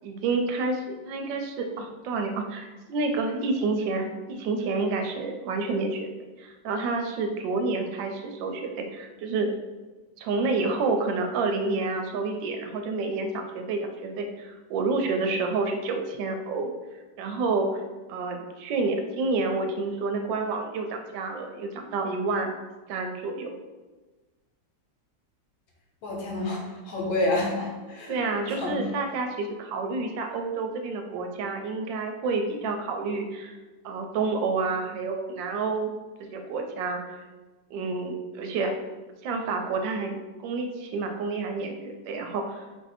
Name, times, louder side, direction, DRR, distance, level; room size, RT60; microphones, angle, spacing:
voice 1, 0.0-6.1 6.4-9.5 10.2-16.7 17.2-17.7 18.1-22.5 22.9-23.5 28.1-33.6 33.8-35.9 36.3-37.2 37.7-38.7 39.2-40.2 40.4-42.6, right 3 dB, 80° right, 4 dB, 1.2 m, -29 dB
voice 2, 26.0-28.2 28.5-28.9, left 2 dB, 80° left, -2 dB, 1.7 m, -29 dB
4.5 x 2.6 x 4.1 m, 1.3 s
omnidirectional pair, 2.1 m